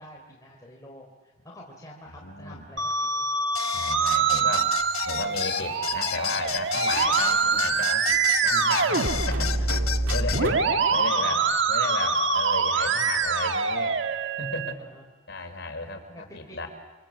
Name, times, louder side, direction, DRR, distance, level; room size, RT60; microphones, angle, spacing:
voice 1, 0.0-3.3 10.5-10.6 10.9-11.5 12.8-12.9 14.0-14.2 14.8-15.1 16.1-16.7, equal, 15° left, -2 dB, 3.6 m, -47 dB
voice 2, 2.2-2.6 3.7-4.8 5.0-8.1 8.4-9.8 10.1-10.6 10.9-11.4 11.7-14.0 14.4-14.8 15.3-16.7, left 2 dB, 55° left, 5 dB, 5.0 m, -34 dB
Musical instrument, 2.8-14.7, right 4 dB, 60° right, 1.5 m, -25 dB
sound 1, 3.5-10.4, left 9 dB, 90° left, 1.4 m, -32 dB
sound 2, 4.1-4.7 5.3-6.1 6.5-6.6 6.9-10.6, right 2 dB, 80° right, 2.2 m, -41 dB
29.0 x 26.0 x 7.7 m, 1.3 s
head